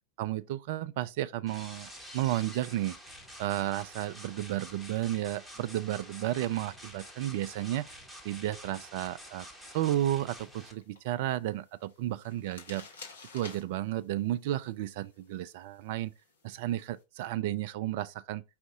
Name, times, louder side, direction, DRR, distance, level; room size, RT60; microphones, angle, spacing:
voice 1, 0.2-3.0 3.4-7.9 8.2-9.5 9.7-12.9 13.3-16.1 16.4-18.4, right 13 dB, 50° right, 0.3 m, -32 dB
sound 1, 1.5-10.7, equal, ahead, 1.0 m, -48 dB
sound 2, 9.6-17.0, left 4 dB, 65° left, 1.3 m, -54 dB
4.9 x 2.5 x 3.6 m
figure-of-eight pair, 90°, 0 cm